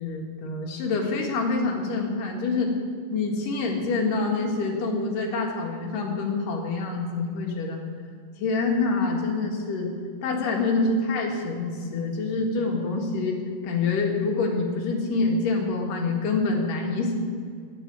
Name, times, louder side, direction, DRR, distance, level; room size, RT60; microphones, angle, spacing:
voice 1, 0.0-2.7 3.1-7.8 8.4-9.9 10.2-13.4 13.6-17.1, left 3 dB, 90° left, 1 dB, 3.4 m, -26 dB
14.5 x 9.8 x 7.5 m, 2.2 s
omnidirectional pair, 3.7 m